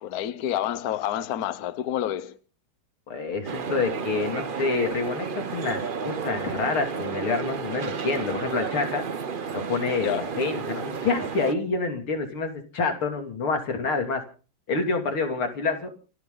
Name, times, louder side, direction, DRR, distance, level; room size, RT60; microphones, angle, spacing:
voice 1, 0.0-2.4 10.0-10.3, left 11 dB, 55° left, 1.3 m, -28 dB
voice 2, 3.1-9.0 9.5-14.2 14.7-15.9, left 4 dB, 80° left, 3.8 m, -27 dB
sound 1, 3.4-11.5, right 5 dB, 60° right, 0.5 m, -32 dB
29.0 x 11.5 x 4.0 m
omnidirectional pair, 2.3 m